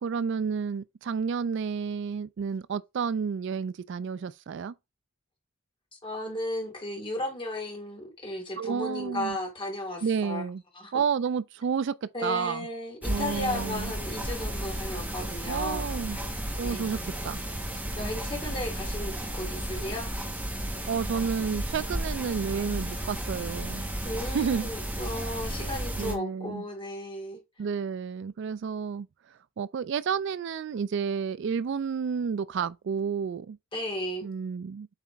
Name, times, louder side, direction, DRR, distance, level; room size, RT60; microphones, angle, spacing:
voice 1, 0.0-4.7 8.6-9.4 10.0-10.6 10.9-12.7 13.1-13.9 15.5-16.2 16.6-17.0 17.2-17.4 20.9-23.9 24.2-24.7 26.0-26.6 27.6-29.1 29.6-33.6 34.2-34.9, right 6 dB, 55° right, 0.3 m, -30 dB
voice 2, 5.9-10.4 10.7-11.0 12.1-16.2 16.6-17.0 17.7-20.1 24.0-27.4 33.7-34.3, left 1 dB, 25° left, 2.7 m, -35 dB
sound 1, 13.0-26.1, right 1 dB, 10° right, 1.7 m, -33 dB
8.0 x 4.1 x 3.5 m
head